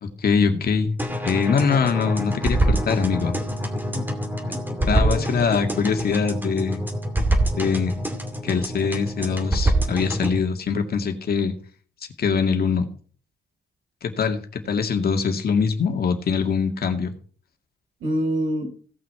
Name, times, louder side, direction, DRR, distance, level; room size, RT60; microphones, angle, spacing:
voice 1, 0.0-0.9 1.2-3.3 4.9-6.8 7.6-8.0 8.4-11.5 12.2-12.9 14.0-17.1, left 5 dB, 55° left, 5 dB, 2.1 m, -23 dB
sound 1, 1.0-10.4, right 1 dB, 10° right, 2.3 m, -25 dB
voice 2, 4.5-5.5 18.0-18.7, equal, 90° right, -1 dB, 5.6 m, -28 dB
17.0 x 6.1 x 4.8 m, 0.43 s
cardioid pair, 115°, 19 cm